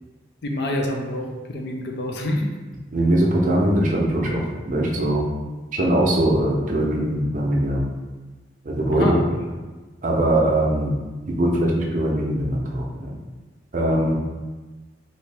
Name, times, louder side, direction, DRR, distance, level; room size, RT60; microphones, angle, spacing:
voice 1, 0.4-2.5 8.9-9.2, left 1 dB, 60° left, 2 dB, 0.5 m, -26 dB
voice 2, 2.9-5.2 5.7-7.8 8.6-9.3 10.0-10.9 11.3-13.1 13.7-14.2, right 1 dB, 45° right, -2 dB, 0.6 m, -21 dB
2.9 x 2.7 x 3.3 m, 1.3 s
head